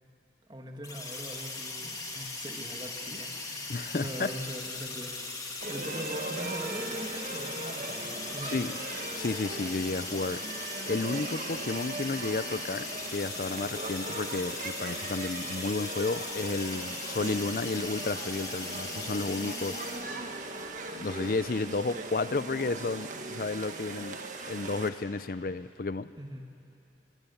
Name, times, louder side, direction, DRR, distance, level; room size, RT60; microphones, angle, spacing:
voice 1, 0.5-8.7 26.2-26.5, equal, 25° right, 2 dB, 2.0 m, -42 dB
sound 1, 0.8-20.0, left 3 dB, 20° left, 2.3 m, -39 dB
voice 2, 3.7-4.4 8.4-8.7 9.1-10.4 10.9-19.8 20.9-24.2 24.5-26.1, left 3 dB, 50° left, 15 dB, 0.5 m, -32 dB
sound 2, 5.6-24.9, right 2 dB, 45° right, 1.6 m, -39 dB
24.5 x 24.5 x 7.1 m, 2.7 s
head